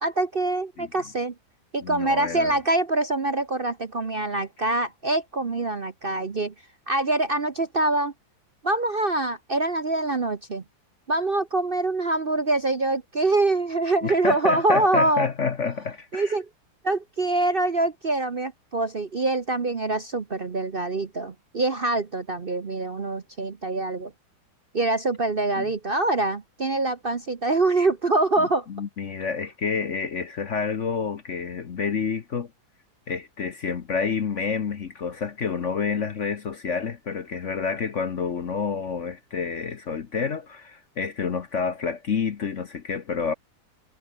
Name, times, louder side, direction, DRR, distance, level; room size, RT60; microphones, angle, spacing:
voice 1, 0.0-1.3 1.7-6.5 6.9-8.1 8.6-10.6 11.1-15.3 16.1-16.5 16.8-24.1 24.7-28.7, right 2 dB, 35° right, 1.0 m, -24 dB
voice 2, 1.8-2.5 14.0-16.4 25.6-25.7 28.4-32.5 33.1-43.3, left 5 dB, 45° left, 1.2 m, -29 dB
omnidirectional pair, 2.0 m